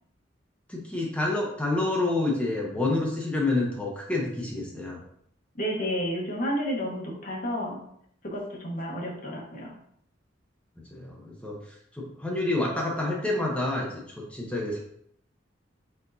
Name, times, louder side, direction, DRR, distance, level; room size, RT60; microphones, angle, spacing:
voice 1, 0.7-5.0 10.9-11.6 11.9-14.8, left 2 dB, 5° left, -3 dB, 0.7 m, -28 dB
voice 2, 5.5-7.8 8.2-9.7, equal, 45° left, -1 dB, 1.1 m, -31 dB
4.4 x 4.4 x 2.7 m, 0.69 s
head